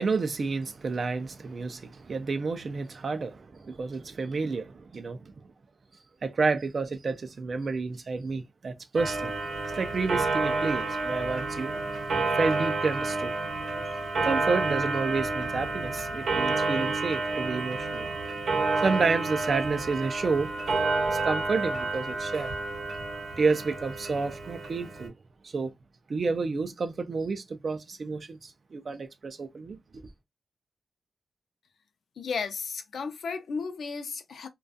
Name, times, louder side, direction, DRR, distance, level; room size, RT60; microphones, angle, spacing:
voice 1, 0.0-5.5 6.2-9.3 9.7-11.8 12.4-13.3 14.2-18.1 18.8-20.5 21.1-22.5 23.4-25.1 25.4-25.7 26.1-30.0, right 4 dB, 40° right, 0.3 m, -30 dB
Clock, 9.0-25.1, right 3 dB, 65° right, 0.8 m, -30 dB
voice 2, 32.2-34.5, left 5 dB, 65° left, 0.4 m, -34 dB
2.3 x 2.2 x 2.4 m
wide cardioid pair, 170°, 0 cm